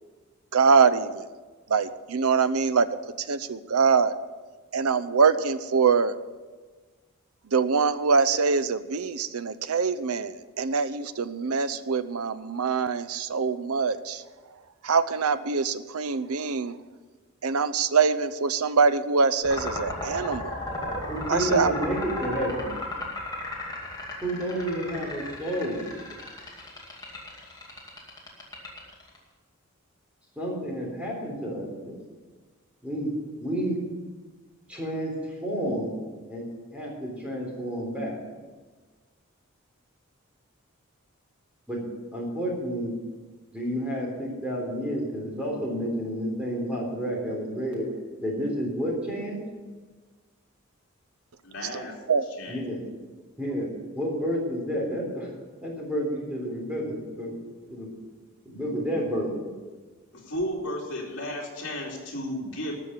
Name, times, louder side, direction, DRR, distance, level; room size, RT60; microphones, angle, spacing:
voice 1, 0.5-1.2 1.7-2.9 3.3-4.1 4.7-6.2 7.5-14.2 14.8-16.7 17.4-20.6 21.3-21.7 51.7-51.8 52.1-52.2, right 5 dB, 90° right, 14 dB, 0.7 m, -24 dB
sound 1, 19.4-29.2, left 2 dB, 20° left, 2.3 m, -35 dB
voice 2, 21.1-22.7 24.2-25.9 30.4-32.0 32.8-33.1 33.4-33.8 34.7-35.1 35.4-35.9 36.3-36.4 36.7-38.2 41.7-41.8 42.1-42.9 43.5-47.9 48.2-49.4 52.5-52.8 53.4-53.7 53.9-55.3 55.6-57.4 57.7-57.9 58.5-59.3, equal, 5° right, -2 dB, 3.6 m, -30 dB
voice 3, 51.4-52.0 52.4-52.6 60.1-62.7, left 1 dB, 60° left, -2 dB, 3.1 m, -33 dB
13.0 x 6.4 x 9.8 m, 1.4 s
head